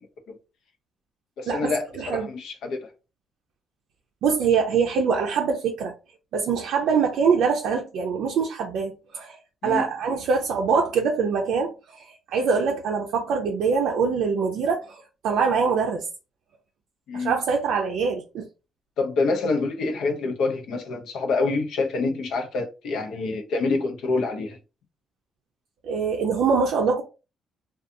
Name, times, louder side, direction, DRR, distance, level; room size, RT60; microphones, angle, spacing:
voice 1, 1.4-2.9 9.6-9.9 17.1-17.3 19.0-24.6, left 3 dB, 80° left, 0.6 m, -26 dB
voice 2, 2.0-2.3 4.2-5.9 6.3-16.0 17.1-18.5 25.8-27.0, right 5 dB, 80° right, 0.4 m, -24 dB
2.5 x 2.3 x 2.6 m
cardioid pair, 90°, 0 cm